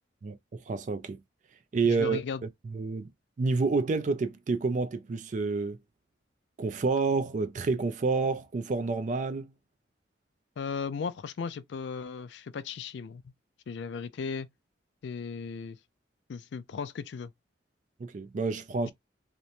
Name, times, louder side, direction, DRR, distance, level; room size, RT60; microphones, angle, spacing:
voice 1, 0.2-1.2 1.7-2.2 2.6-3.1 3.4-5.8 6.6-9.5 18.0-18.9, right 4 dB, 40° right, 0.3 m, -29 dB
voice 2, 1.8-2.4 10.6-13.2 13.7-14.5 15.0-15.8 16.3-17.3, left 5 dB, 65° left, 0.3 m, -36 dB
2.9 x 2.1 x 2.5 m
head